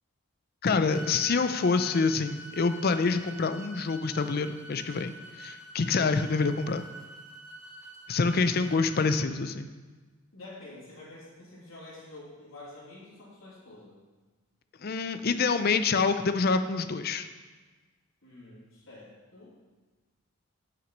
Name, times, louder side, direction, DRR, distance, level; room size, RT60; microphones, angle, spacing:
voice 1, 0.6-6.9 8.1-9.7 14.8-17.3, left 4 dB, 45° left, 10 dB, 0.5 m, -26 dB
sound 1, 0.9-9.2, right 1 dB, ahead, 1.6 m, -46 dB
voice 2, 6.0-6.4 10.3-14.0 18.2-19.5, left 2 dB, 75° left, -8 dB, 2.7 m, -48 dB
9.0 x 5.9 x 5.3 m, 1.3 s
head